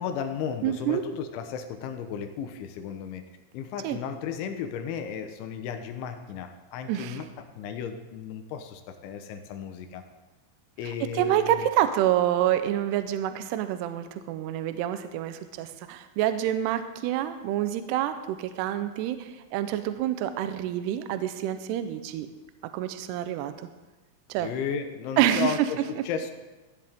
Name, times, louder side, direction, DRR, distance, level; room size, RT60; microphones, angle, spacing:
voice 1, 0.0-3.3 3.5-7.3 7.6-10.1 10.8-11.7 24.4-26.3, left 7 dB, 80° left, 7 dB, 3.3 m, -34 dB
voice 2, 0.6-1.0 3.8-4.0 6.9-7.2 11.0-22.3 22.7-23.5 24.3-24.5 25.2-25.7 26.0-26.1, right 12 dB, 80° right, 10 dB, 2.5 m, -27 dB
15.5 x 10.5 x 3.6 m, 1.1 s
omnidirectional pair, 5.4 m